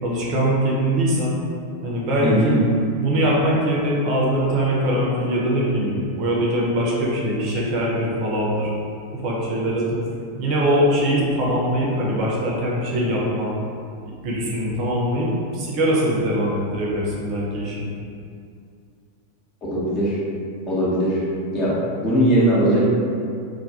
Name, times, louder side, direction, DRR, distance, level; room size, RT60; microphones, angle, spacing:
voice 1, 0.0-1.4 1.8-2.6 2.9-8.7 9.1-10.0 10.4-13.5 14.2-17.9, equal, 40° right, -5 dB, 0.5 m, -22 dB
voice 2, 2.2-2.6 19.7-20.2 20.7-21.2 21.5-22.9, right 1 dB, 30° left, -8 dB, 0.7 m, -19 dB
2.2 x 2.1 x 2.7 m, 2.4 s
figure-of-eight pair, 90°, 0 cm